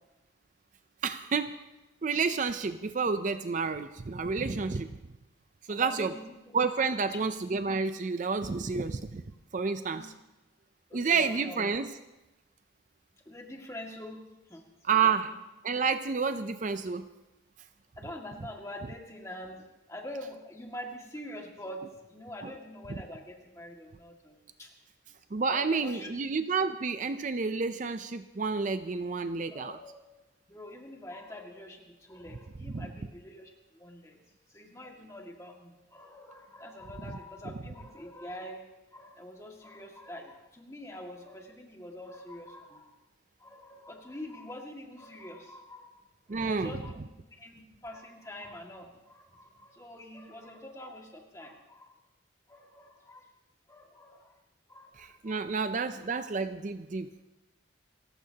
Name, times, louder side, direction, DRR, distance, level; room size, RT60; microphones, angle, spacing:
voice 1, 1.0-1.6 2.0-5.0 5.7-6.1 6.5-9.2 9.5-10.1 10.9-11.9 14.8-15.3 15.6-17.1 22.4-22.5 25.3-29.8 32.7-32.9 46.3-46.8 55.0-57.1, right 5 dB, 40° right, 10 dB, 0.5 m, -30 dB
voice 2, 5.7-6.6 7.0-7.3 9.9-10.1 10.9-11.6 13.3-15.3 18.0-24.7 25.5-26.2 29.5-30.0 30.5-34.2 34.5-42.9 43.4-46.0 46.3-47.0 47.3-52.0 52.5-53.3 53.7-54.4 54.7-55.5, left 1 dB, 15° left, 1 dB, 1.9 m, -45 dB
28.5 x 15.0 x 2.9 m, 1.0 s
head